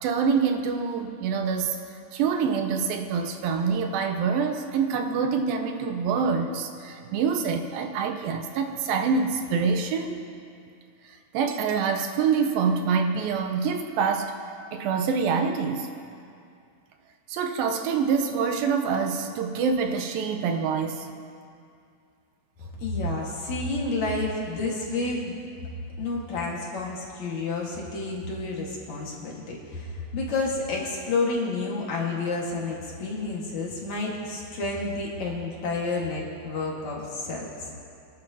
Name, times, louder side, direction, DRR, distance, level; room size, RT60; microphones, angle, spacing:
voice 1, 0.0-1.8 2.1-10.2 11.0-14.4 14.7-15.9 17.3-21.1, right 5 dB, 80° right, 5 dB, 2.4 m, -26 dB
voice 2, 22.8-25.4 26.0-37.8, left 3 dB, 55° left, -3 dB, 2.6 m, -30 dB
25.5 x 12.5 x 2.8 m, 2.4 s
omnidirectional pair, 4.3 m